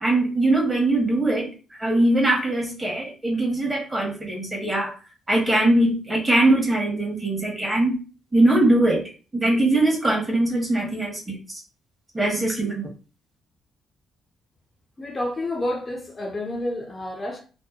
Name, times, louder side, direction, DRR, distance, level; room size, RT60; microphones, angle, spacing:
voice 1, 0.0-4.9 5.3-8.0 8.3-11.4 12.1-12.9, right 1 dB, 20° right, 1.0 m, -21 dB
voice 2, 15.0-17.4, left 1 dB, 30° left, 0.5 m, -29 dB
2.7 x 2.1 x 2.3 m
cardioid pair, 90°, 0 cm